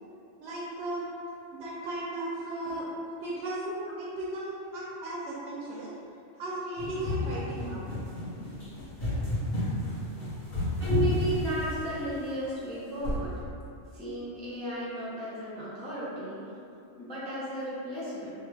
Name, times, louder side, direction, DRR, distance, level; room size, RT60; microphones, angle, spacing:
voice 1, 0.4-1.1 1.5-2.8 3.2-5.9 6.4-7.8, right 1 dB, 70° right, -7 dB, 0.8 m, -35 dB
sound 1, 6.8-12.1 13.0-13.4, left 2 dB, 40° left, 1.1 m, -31 dB
voice 2, 10.8-13.3 13.9-16.4 17.0-18.3, right 1 dB, 10° left, -10 dB, 0.4 m, -34 dB
3.0 x 2.3 x 3.3 m, 2.6 s
omnidirectional pair, 1.3 m